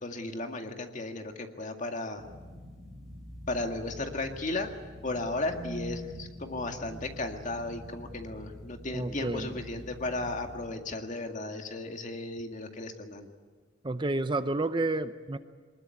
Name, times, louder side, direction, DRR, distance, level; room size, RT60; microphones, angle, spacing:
voice 1, 0.0-2.2 3.5-4.7 5.0-13.3, left 2 dB, 40° left, 5 dB, 2.0 m, -35 dB
sound 1, 2.2-10.7, equal, ahead, 7.4 m, -45 dB
voice 2, 8.9-9.5 13.8-15.4, right 2 dB, 25° right, 11 dB, 0.7 m, -30 dB
23.0 x 21.0 x 9.6 m, 1.5 s
head